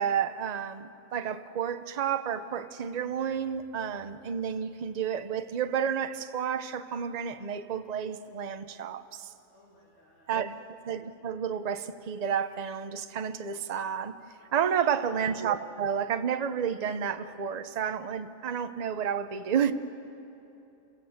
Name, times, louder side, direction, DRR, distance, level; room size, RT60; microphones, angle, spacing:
voice 1, 0.0-9.3 10.3-10.6 10.8-14.2 14.5-19.7, right 8 dB, 40° right, 0.7 m, -31 dB
voice 2, 9.5-10.4 14.4-14.9, left 1 dB, 65° left, 3.3 m, -60 dB
27.5 x 17.0 x 8.0 m
omnidirectional pair, 1.4 m